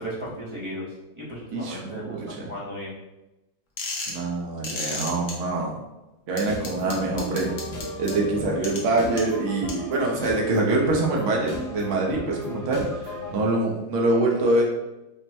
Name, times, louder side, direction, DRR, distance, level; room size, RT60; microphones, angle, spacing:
voice 1, 0.0-2.9, equal, 30° right, -7 dB, 0.5 m, -35 dB
voice 2, 1.5-2.5 4.1-5.7 6.3-7.5 8.0-14.6, right 2 dB, 55° right, -1 dB, 0.9 m, -25 dB
sound 1, 3.8-4.2 4.6-5.3 6.4-8.1 8.6-8.8 9.2-9.3 9.7-9.8, left 3 dB, 55° left, 1.0 m, -31 dB
sound 2, 6.4-13.3, left 2 dB, 70° left, 1.3 m, -35 dB
5.2 x 2.1 x 2.9 m, 0.99 s
omnidirectional pair, 1.9 m